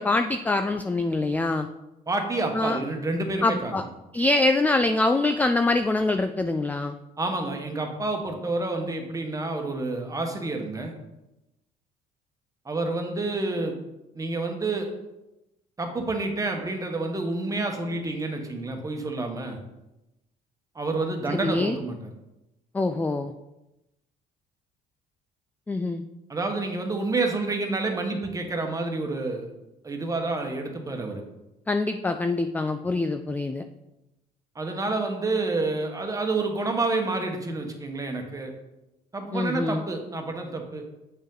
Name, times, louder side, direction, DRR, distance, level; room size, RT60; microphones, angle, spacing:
voice 1, 0.0-1.7 2.5-2.8 3.4-3.8 4.1-7.0 21.3-21.8 22.7-23.3 25.7-26.0 31.7-33.6 39.3-39.8, left 2 dB, 10° left, 8 dB, 0.3 m, -24 dB
voice 2, 2.1-3.8 7.2-10.9 12.6-13.8 14.1-14.9 15.8-19.6 20.7-22.1 26.3-29.5 29.8-31.2 34.5-38.5 39.1-40.8, right 2 dB, 20° right, 3 dB, 1.2 m, -29 dB
7.8 x 5.1 x 3.8 m, 0.94 s
cardioid pair, 110°, 17 cm